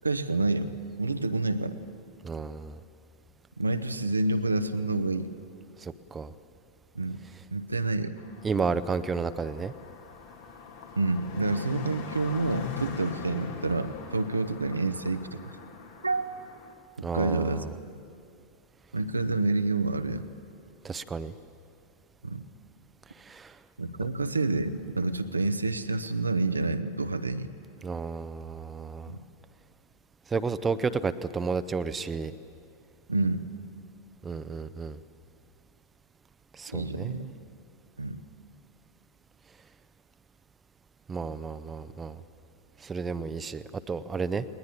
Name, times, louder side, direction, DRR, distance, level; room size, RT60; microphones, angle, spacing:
voice 1, 0.0-0.7 1.0-1.8 3.6-5.3 6.9-7.2 7.5-8.1 11.0-15.4 16.0-16.3 17.0-17.6 18.9-20.3 22.2-22.4 23.8-27.5 29.1-29.2 33.1-33.4 36.7-37.3 38.0-38.2, right 2 dB, 80° right, 9 dB, 0.9 m, -28 dB
voice 2, 2.2-2.8 5.8-6.3 8.4-9.7 17.0-17.7 20.8-21.3 23.3-23.5 27.8-29.1 30.3-32.3 34.2-35.0 36.6-37.3 41.1-42.2 42.8-44.5, right 5 dB, 15° right, 12 dB, 0.7 m, -32 dB
Car passing by, 8.2-16.7, left 6 dB, 55° left, 2.3 m, -41 dB
20.0 x 19.5 x 10.0 m, 2.5 s
figure-of-eight pair, 90°, 0 cm